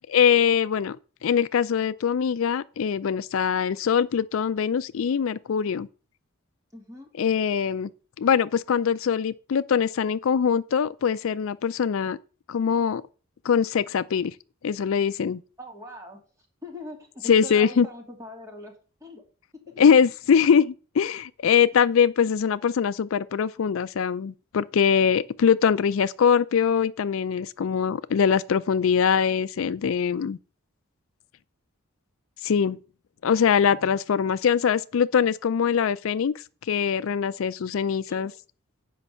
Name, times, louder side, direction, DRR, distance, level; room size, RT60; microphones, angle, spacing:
voice 1, 0.1-1.0 1.2-5.9 7.2-7.9 8.2-12.2 12.5-13.0 13.4-14.3 14.6-15.4 17.3-17.9 19.8-30.4 32.4-32.8 33.2-36.3 36.7-38.3, left 7 dB, 70° left, 0.4 m, -22 dB
voice 2, 6.7-7.1 15.6-16.2 16.6-18.7 19.0-19.2 38.1-38.3, left 1 dB, 15° right, 2.4 m, -41 dB
8.5 x 5.3 x 6.6 m
head